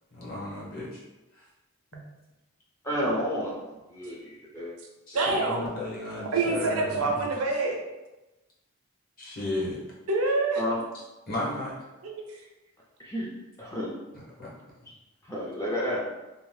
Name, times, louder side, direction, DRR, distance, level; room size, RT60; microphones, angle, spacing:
voice 1, 0.1-1.0 1.9-2.0 5.1-7.2 9.2-9.8 11.3-11.7 14.1-14.5, left 2 dB, 40° left, -6 dB, 0.8 m, -34 dB
voice 2, 2.8-3.5 3.9-4.1 4.5-4.7 5.2-5.9 10.6-10.8 13.0-13.3 13.6-13.9 15.3-16.0, equal, 15° left, -5 dB, 0.4 m, -30 dB
voice 3, 5.1-5.7 6.3-7.8 10.1-10.6 12.0-12.1, right 3 dB, 75° right, 1 dB, 0.5 m, -26 dB
2.7 x 2.0 x 3.1 m, 1.1 s
head